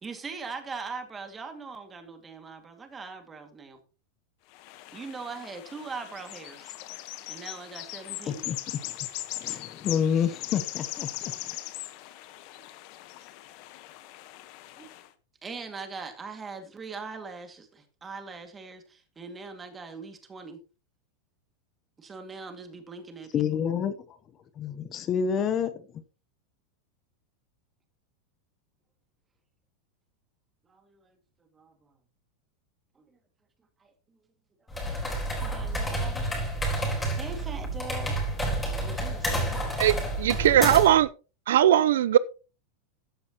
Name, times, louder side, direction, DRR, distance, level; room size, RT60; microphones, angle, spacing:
voice 1, 0.0-3.8 4.9-6.8 7.3-8.5 11.6-11.7 14.8-14.9 15.4-20.6 22.0-23.4 30.7-31.2 31.5-31.7 33.0-33.1 33.8-33.9 35.4-36.2 37.1-38.2 38.8-39.6, right 4 dB, 15° right, 2.2 m, -41 dB
sound 1, 4.5-15.1, left 16 dB, 50° left, 1.2 m, -40 dB
voice 2, 8.3-8.9 9.3-11.6 23.3-24.2 24.6-26.0, left 7 dB, 25° left, 0.9 m, -29 dB
sound 2, 34.7-41.0, right 1 dB, 10° left, 4.0 m, -30 dB
voice 3, 39.8-41.1 41.5-42.2, right 11 dB, 85° right, 0.6 m, -20 dB
13.5 x 10.5 x 3.0 m
supercardioid pair, 155°, 0 cm